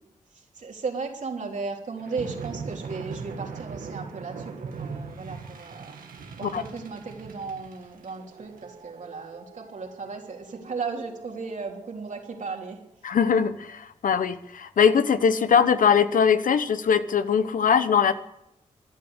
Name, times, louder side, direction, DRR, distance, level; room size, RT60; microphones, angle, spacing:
voice 1, 0.6-6.0 6.4-12.8, right 4 dB, 60° right, 1 dB, 3.3 m, -35 dB
sound 1, 2.0-12.6, right 5 dB, 80° right, 1.8 m, -41 dB
voice 2, 13.0-18.1, left 7 dB, 70° left, 12 dB, 1.0 m, -21 dB
15.5 x 10.5 x 8.0 m, 0.80 s
cardioid pair, 45°, 14 cm